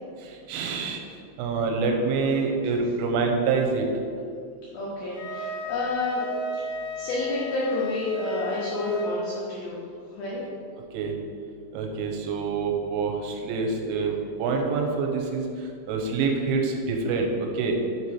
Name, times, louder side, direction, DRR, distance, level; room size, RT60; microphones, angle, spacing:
voice 1, 0.5-1.0 1.4-3.9 10.9-11.1 11.7-14.1 14.4-15.4 15.9-17.7, right 4 dB, 85° right, 2 dB, 3.2 m, -26 dB
voice 2, 4.7-6.3 7.0-9.8 10.1-10.4, left 2 dB, 85° left, -6 dB, 2.1 m, -29 dB
Wind instrument woodwind instrument, 5.1-9.1, left 1 dB, 65° left, 2.2 m, -34 dB
7.0 x 4.7 x 4.1 m, 2.3 s
omnidirectional pair, 5.7 m